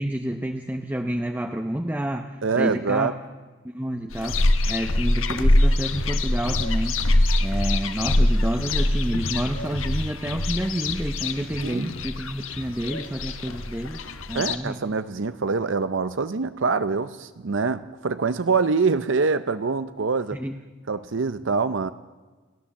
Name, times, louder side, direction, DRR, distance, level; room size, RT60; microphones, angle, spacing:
voice 1, 0.0-3.1 3.6-4.4 4.7-7.0 7.4-14.0 14.3-14.8 20.3-20.6, right 1 dB, 10° right, 4 dB, 0.7 m, -29 dB
voice 2, 2.4-3.1 11.6-11.9 14.3-20.4 20.9-21.9, right 4 dB, 70° right, 12 dB, 0.6 m, -25 dB
sound 1, 4.1-14.6, left 1 dB, 90° left, 1.3 m, -24 dB
29.5 x 12.5 x 7.1 m, 1.3 s
head